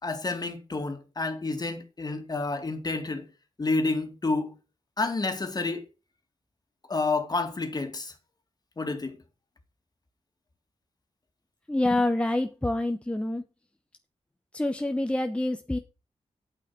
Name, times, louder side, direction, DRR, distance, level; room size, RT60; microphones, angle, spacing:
voice 1, 0.0-3.3 3.6-4.6 5.0-5.9 6.9-8.1 8.8-9.2, left 3 dB, 35° left, 2.4 m, -29 dB
voice 2, 11.7-13.5 14.5-15.8, left 1 dB, 10° left, 0.9 m, -27 dB
9.0 x 8.4 x 6.0 m
wide cardioid pair, 100°, 11 cm